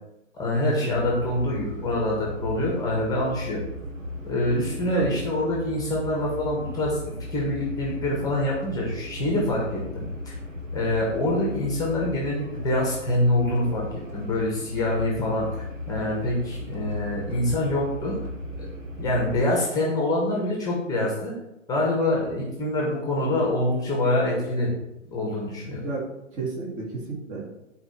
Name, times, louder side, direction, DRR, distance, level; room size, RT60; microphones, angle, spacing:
voice 1, 0.4-3.6 4.2-10.3 10.7-18.2 18.6-18.7 19.0-21.3 21.7-24.7 25.0-25.9, left 1 dB, 10° left, -3 dB, 1.5 m, -25 dB
sound 1, 0.9-19.4, left 1 dB, 80° right, 1.3 m, -36 dB
voice 2, 19.1-19.4 25.8-27.5, right 3 dB, 20° right, -3 dB, 2.3 m, -31 dB
11.0 x 4.7 x 4.5 m, 0.91 s
figure-of-eight pair, 130°, 38 cm